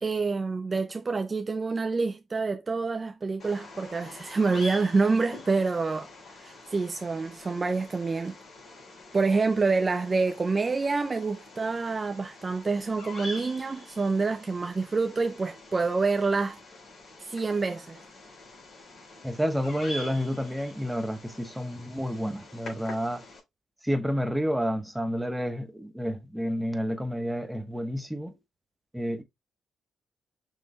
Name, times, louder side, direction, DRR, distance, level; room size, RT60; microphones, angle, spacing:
voice 1, 0.0-6.1 6.4-8.4 9.1-16.6 17.3-18.0, right 4 dB, 40° right, 0.5 m, -27 dB
Bird vocalization bird call bird song, 3.4-23.4, left 1 dB, 60° left, 3.3 m, -45 dB
voice 2, 19.2-23.3 23.8-28.4 28.9-29.2, equal, 5° right, 1.1 m, -30 dB
6.4 x 3.1 x 2.2 m
hypercardioid pair, 45°, 0 cm